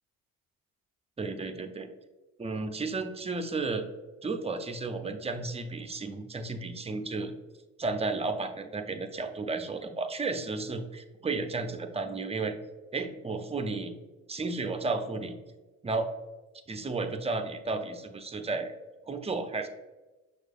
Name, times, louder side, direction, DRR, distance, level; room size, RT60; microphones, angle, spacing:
voice 1, 1.2-1.9 2.4-3.8 4.2-7.3 7.8-12.6 12.9-13.9 14.3-15.4 15.8-16.1 16.7-18.7 19.1-19.7, right 3 dB, 15° right, 7 dB, 0.5 m, -33 dB
6.1 x 2.4 x 2.4 m, 1.1 s
hypercardioid pair, 55°, 39 cm